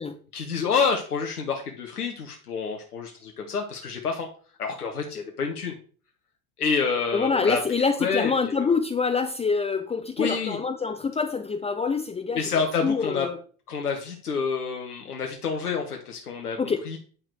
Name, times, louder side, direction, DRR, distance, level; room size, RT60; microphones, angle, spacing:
voice 1, 0.3-4.3 4.6-5.7 6.6-8.7 10.2-10.6 12.3-13.3 13.7-16.6 16.8-17.0, left 5 dB, 80° left, 1.4 m, -28 dB
voice 2, 7.1-12.5 12.8-13.4 16.6-16.8, left 5 dB, 15° left, 0.7 m, -26 dB
9.7 x 6.0 x 4.6 m
figure-of-eight pair, 75°, 45 cm